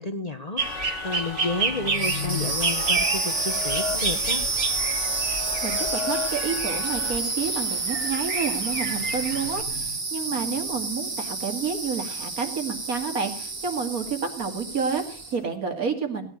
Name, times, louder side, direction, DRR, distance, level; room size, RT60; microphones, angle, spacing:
voice 1, 0.0-4.4, left 2 dB, 30° left, 8 dB, 1.0 m, -31 dB
sound 1, 0.6-7.2, left 6 dB, 60° left, 1.5 m, -34 dB
sound 2, 0.6-9.6, right 4 dB, 65° right, 2.3 m, -31 dB
sound 3, 1.9-15.4, right 3 dB, 40° right, 2.4 m, -29 dB
voice 2, 5.6-16.3, right 5 dB, 85° right, 4 dB, 2.8 m, -30 dB
17.5 x 10.0 x 6.4 m, 0.41 s
omnidirectional pair, 1.5 m